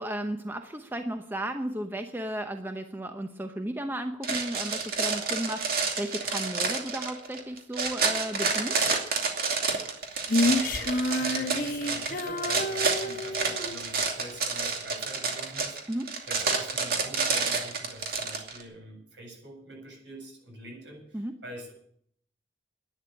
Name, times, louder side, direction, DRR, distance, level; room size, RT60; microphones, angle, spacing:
voice 1, 0.0-9.1 15.9-16.1 21.1-21.3, right 1 dB, 10° right, 6 dB, 0.8 m, -34 dB
sound 1, 4.2-18.6, right 4 dB, 55° right, 2.6 m, -29 dB
voice 2, 10.1-21.7, right 1 dB, 75° right, 0 dB, 7.9 m, -45 dB
Female singing, 10.3-13.8, left 1 dB, 50° left, 1.2 m, -29 dB
11.5 x 10.5 x 8.9 m, 0.67 s
head